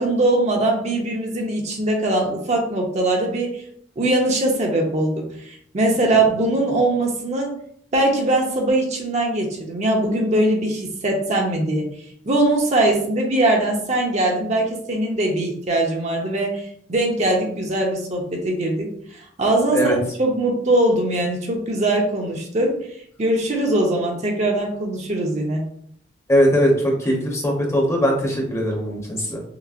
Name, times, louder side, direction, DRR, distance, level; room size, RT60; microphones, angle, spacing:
voice 1, 0.0-3.6 4.0-7.5 7.9-11.9 12.2-19.9 20.2-22.8 23.2-25.6, right 1 dB, 40° right, 0 dB, 0.7 m, -21 dB
voice 2, 26.3-29.4, equal, 15° left, -1 dB, 0.8 m, -20 dB
5.9 x 2.0 x 2.4 m, 0.64 s
head